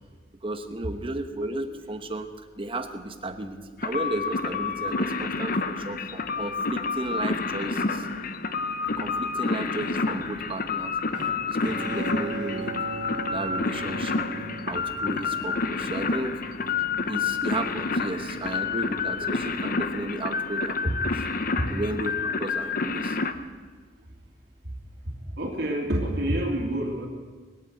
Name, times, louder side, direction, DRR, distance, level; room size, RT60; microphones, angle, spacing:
voice 1, 0.4-2.3 2.6-8.0 9.0-10.9 11.5-12.7 13.3-14.3 14.7-16.4 17.1-21.1 21.7-23.2, right 2 dB, 30° right, 7 dB, 1.1 m, -33 dB
sound 1, 1.4-2.3 2.6-3.2 3.7-3.8 4.5-19.7, left 1 dB, 35° left, 3.6 m, -47 dB
sound 2, 3.8-23.3, left 4 dB, 50° left, 0.8 m, -29 dB
Bowed string instrument, 11.1-15.4, right 4 dB, 90° right, 1.2 m, -38 dB
voice 2, 25.3-27.1, right 1 dB, 65° right, -2 dB, 2.6 m, -27 dB
20.5 x 8.7 x 7.9 m, 1.5 s
head